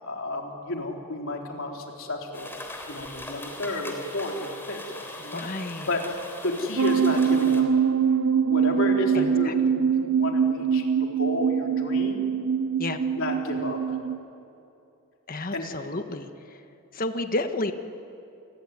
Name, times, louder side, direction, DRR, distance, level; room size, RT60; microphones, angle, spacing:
voice 1, 0.0-2.5 2.8-6.0 6.4-7.7 8.4-12.2 13.1-13.8 15.5-15.7, left 1 dB, 65° left, 1 dB, 3.9 m, -31 dB
sound 1, 2.3-7.6, left 1 dB, 10° left, 3.5 m, -40 dB
voice 2, 5.3-5.9 9.1-9.5 12.8-13.0 15.3-16.6 16.9-17.7, left 2 dB, 40° left, 7 dB, 1.4 m, -31 dB
sound 2, 6.8-14.2, right 7 dB, 65° right, 0.7 m, -23 dB
28.5 x 20.5 x 9.7 m, 2.7 s
head